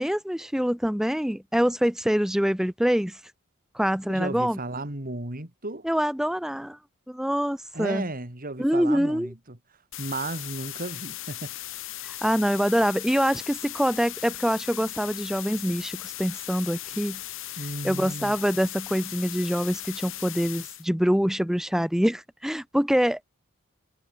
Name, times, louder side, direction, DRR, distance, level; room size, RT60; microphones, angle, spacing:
voice 1, 0.0-3.2 3.7-4.6 5.8-6.8 7.1-8.1 8.6-9.3 12.0-17.2 17.8-23.3, equal, ahead, 0.6 m, -25 dB
voice 2, 4.1-5.9 7.7-9.6 10.0-11.5 17.6-18.3, right 2 dB, 40° right, 3.2 m, -34 dB
sound 1, 9.9-20.8, left 14 dB, 65° left, 2.2 m, -38 dB
head